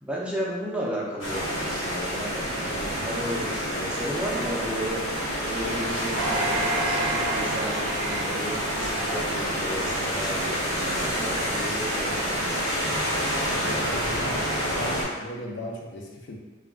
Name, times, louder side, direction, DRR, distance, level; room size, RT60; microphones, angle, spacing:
voice 1, 0.0-12.9, equal, 5° right, -5 dB, 0.4 m, -34 dB
sound 1, 1.2-15.0, equal, 85° left, 0.9 m, -28 dB
sound 2, 6.2-9.6 10.1-10.2, right 2 dB, 85° right, 0.5 m, -30 dB
voice 2, 13.5-14.5 14.7-16.3, left 1 dB, 60° left, -1 dB, 0.4 m, -37 dB
2.3 x 2.2 x 3.5 m, 1.2 s
head